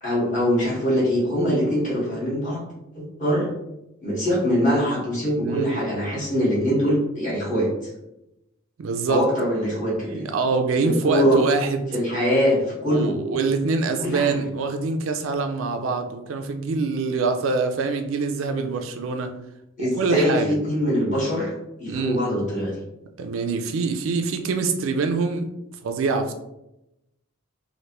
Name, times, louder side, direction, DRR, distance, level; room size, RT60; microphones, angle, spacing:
voice 1, 0.0-2.6 2.9-3.5 4.0-7.7 9.1-10.3 11.0-11.4 11.9-13.1 14.0-14.4 19.8-21.5 21.8-22.8, equal, 35° left, -7 dB, 1.4 m, -23 dB
voice 2, 8.8-9.3 9.8-11.9 12.8-19.3 19.8-20.5 21.9-22.2 23.2-25.5 25.8-26.3, right 4 dB, 65° right, 6 dB, 0.3 m, -24 dB
3.2 x 2.5 x 2.9 m, 0.88 s
head